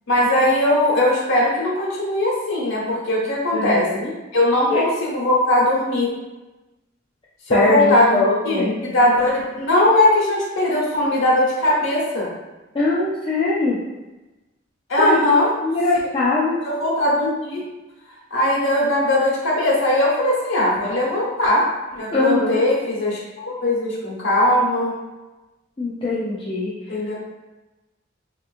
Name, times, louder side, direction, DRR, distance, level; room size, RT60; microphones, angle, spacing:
voice 1, 0.1-3.9 4.3-6.1 7.5-12.3 14.9-15.5 16.6-17.6 18.3-24.9 26.9-27.2, left 1 dB, 80° left, -4 dB, 1.1 m, -19 dB
voice 2, 3.5-4.1 4.7-4.8 7.5-8.7 12.7-13.8 15.0-15.2 15.6-16.6 22.1-22.6 25.8-26.7, left 2 dB, 25° left, -8 dB, 0.4 m, -21 dB
3.4 x 2.8 x 2.5 m, 1.1 s
head